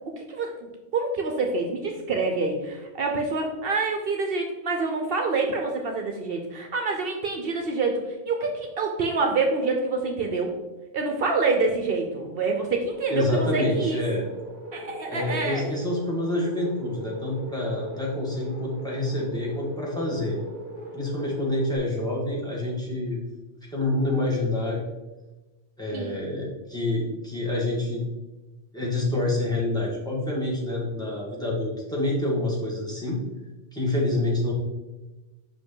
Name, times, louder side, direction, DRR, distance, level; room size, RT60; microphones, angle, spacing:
voice 1, 0.1-10.5 10.9-14.0 14.7-15.6 25.9-26.2, right 3 dB, 65° right, 3 dB, 0.9 m, -27 dB
sound 1, 12.9-21.8, right 1 dB, 15° right, 1.5 m, -39 dB
voice 2, 13.1-14.2 15.1-20.4 20.9-23.2 23.7-24.8 25.8-28.0 28.7-33.2 33.7-34.5, left 1 dB, 5° left, -5 dB, 1.6 m, -27 dB
5.6 x 5.0 x 3.7 m, 1.1 s
omnidirectional pair, 1.1 m